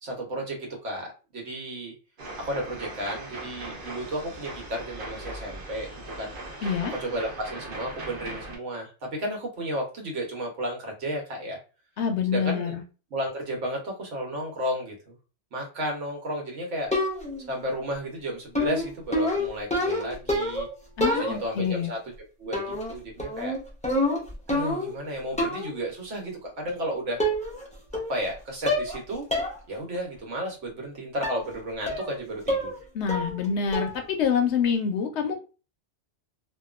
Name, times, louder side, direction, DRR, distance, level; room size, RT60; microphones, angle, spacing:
voice 1, 0.0-1.9 2.4-6.3 6.9-11.6 12.3-12.7 13.1-15.1 15.5-16.9 17.5-20.7 21.1-22.0 22.4-23.5 24.5-27.2 28.1-29.2 29.7-32.7, equal, 80° right, 0 dB, 1.3 m, -33 dB
sound 1, 2.2-8.6, right 1 dB, 55° right, 0.8 m, -39 dB
voice 2, 6.6-6.9 12.0-12.8 21.0-21.9 32.9-35.3, left 7 dB, 70° left, 5 dB, 0.9 m, -26 dB
sound 2, 16.9-17.5 18.5-20.7 21.0-21.7 22.5-22.9 23.2-25.0 25.4-25.8 26.7-26.8 27.2-27.7 27.9-28.3 28.7-29.0 29.3-29.5 29.9-30.0 31.2-31.5 31.9-32.2 32.5-32.8 33.1-33.5 33.7-34.1, left 1 dB, 10° left, 0.3 m, -27 dB
2.7 x 2.3 x 2.4 m, 0.33 s
omnidirectional pair, 1.2 m